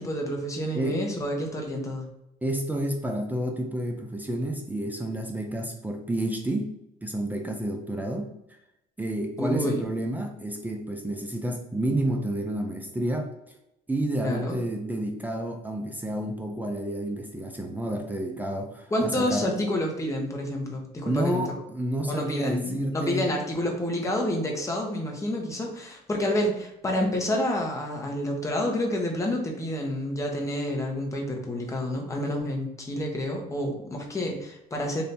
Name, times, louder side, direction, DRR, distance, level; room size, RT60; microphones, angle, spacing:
voice 1, 0.0-2.1 9.4-9.9 14.2-14.6 18.9-21.4 22.1-35.0, left 1 dB, 20° left, 0 dB, 0.9 m, -29 dB
voice 2, 2.4-6.7 7.0-8.3 9.0-13.3 13.9-19.5 21.1-23.3, right 1 dB, 10° right, 2 dB, 0.5 m, -30 dB
3.4 x 2.7 x 4.2 m, 0.83 s
cardioid pair, 110°, 17 cm